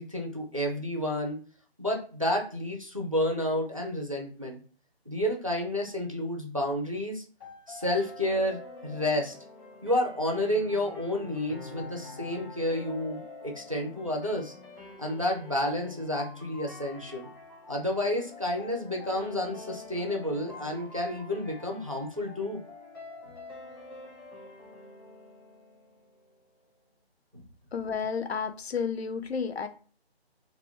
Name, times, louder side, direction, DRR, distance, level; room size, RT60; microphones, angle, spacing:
voice 1, 0.0-1.4 1.8-4.6 5.1-7.2 7.7-9.3 9.8-14.5 15.0-17.3 17.7-22.6, left 1 dB, 35° right, 1 dB, 0.4 m, -30 dB
sound 1, 7.4-26.4, left 3 dB, 20° left, 0.7 m, -46 dB
voice 2, 27.7-29.7, left 6 dB, 75° left, 10 dB, 0.5 m, -31 dB
2.2 x 2.1 x 3.5 m, 0.40 s
figure-of-eight pair, 170°, 32 cm